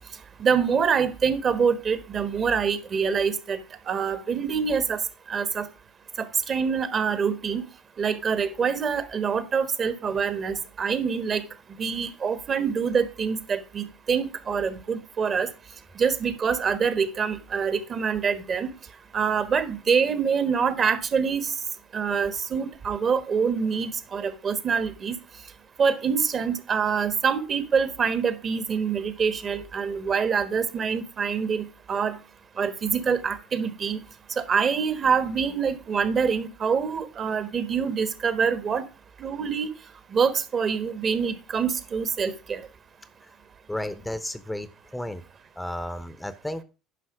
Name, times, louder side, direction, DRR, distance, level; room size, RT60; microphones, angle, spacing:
voice 1, 0.4-3.6 3.9-5.0 5.3-5.6 6.2-7.6 8.0-11.4 11.8-15.5 16.0-18.7 19.1-21.5 21.9-25.1 25.8-32.2 32.6-34.0 34.4-38.8 39.2-39.7 40.1-42.6, right 6 dB, 40° right, 12 dB, 1.4 m, -25 dB
voice 2, 43.7-45.2 45.6-46.6, left 1 dB, 5° left, 13 dB, 0.9 m, -33 dB
9.9 x 5.9 x 4.9 m, 0.32 s
hypercardioid pair, 70°, 0 cm